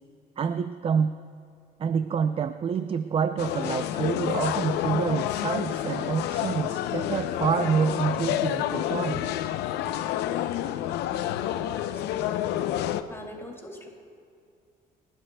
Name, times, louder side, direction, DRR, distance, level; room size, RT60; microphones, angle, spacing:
voice 1, 0.4-1.1 1.8-9.3, right 6 dB, 35° right, 10 dB, 0.4 m, -27 dB
sound 1, 3.4-13.0, left 12 dB, 85° left, 0.6 m, -29 dB
voice 2, 11.1-12.6 13.1-13.9, left 1 dB, 15° left, 0 dB, 2.8 m, -44 dB
29.0 x 12.0 x 2.3 m, 2.4 s
cardioid pair, 110°, 17 cm